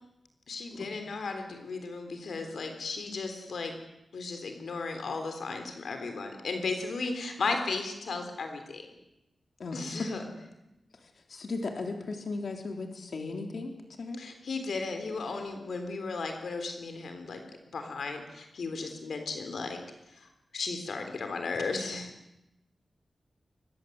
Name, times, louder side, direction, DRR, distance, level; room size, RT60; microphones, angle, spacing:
voice 1, 0.5-3.7 4.1-8.9 9.7-10.2 14.2-17.4 17.7-19.8 20.5-22.1, left 4 dB, 75° left, 6 dB, 3.6 m, -35 dB
voice 2, 9.6-10.1 11.0-13.7 14.0-14.2, left 3 dB, 60° left, 3 dB, 3.6 m, -36 dB
25.0 x 21.5 x 8.0 m, 0.92 s
wide cardioid pair, 120°, 0 cm